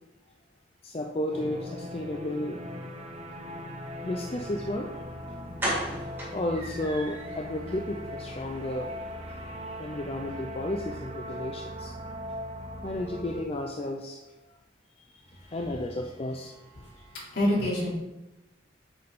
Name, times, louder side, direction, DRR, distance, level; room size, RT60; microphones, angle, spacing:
voice 1, 0.8-2.6 4.0-4.9 6.3-8.9 9.8-11.9 12.8-14.2 15.5-16.5, left 1 dB, 35° left, 1 dB, 0.5 m, -32 dB
sound 1, 1.3-13.4, equal, 35° right, 0.9 m, -39 dB
sound 2, 4.9-5.0 5.6-7.4 7.7-7.8 8.2-8.3 8.6-8.7, right 1 dB, 10° right, 2.0 m, -34 dB
voice 2, 16.8-17.9, left 1 dB, 65° left, -5 dB, 3.1 m, -28 dB
8.0 x 6.8 x 3.6 m, 1.0 s
head